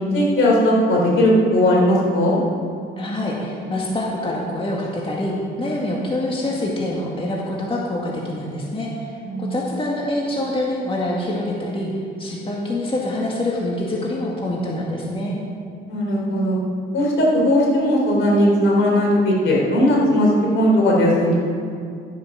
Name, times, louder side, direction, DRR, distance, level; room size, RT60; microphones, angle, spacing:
voice 1, 0.1-2.4 9.2-9.6 15.9-16.6 16.9-21.4, equal, 70° left, -2 dB, 3.6 m, -17 dB
voice 2, 3.0-5.3 5.6-11.9 12.2-15.4, left 1 dB, 25° left, -3 dB, 2.0 m, -25 dB
13.0 x 8.0 x 6.1 m, 2.3 s
cardioid pair, 100°, 21 cm